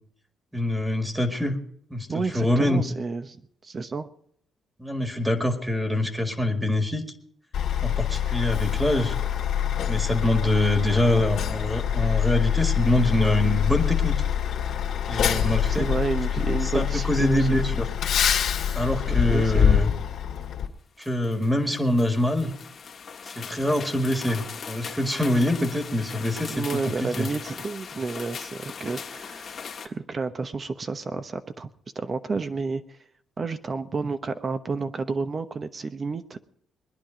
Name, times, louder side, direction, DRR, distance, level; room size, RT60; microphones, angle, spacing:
voice 1, 0.5-1.6 1.9-2.8 4.8-7.0 7.8-9.1 9.9-14.1 15.1-15.9 16.6-17.9 18.7-19.9 21.0-22.5 23.3-27.3, left 1 dB, 5° right, 6 dB, 1.9 m, -24 dB
voice 2, 2.1-3.4 3.6-4.1 15.7-17.7 19.1-19.9 26.5-29.5 29.8-31.7 31.9-33.0 33.4-36.4, right 4 dB, 35° right, 9 dB, 1.0 m, -30 dB
Truck, 7.5-20.7, left 9 dB, 70° left, 1.9 m, -25 dB
sound 1, 20.4-20.5 21.0-29.9, left 6 dB, 50° left, 1.6 m, -39 dB
21.0 x 10.5 x 5.1 m, 0.67 s
cardioid pair, 90°, 0 cm